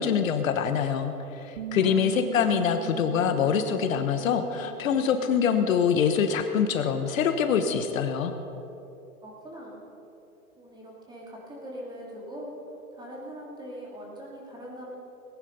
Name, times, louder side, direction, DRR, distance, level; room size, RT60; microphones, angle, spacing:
voice 1, 0.0-8.3, left 7 dB, 60° left, 7 dB, 1.2 m, -25 dB
Bass guitar, 1.6-5.9 6.2-7.8, right 14 dB, 40° right, 0.6 m, -41 dB
voice 2, 9.2-9.9 10.6-12.5 12.9-15.0, equal, 10° right, -3 dB, 3.0 m, -41 dB
19.5 x 10.0 x 5.4 m, 2.9 s
hypercardioid pair, 140°, 45 cm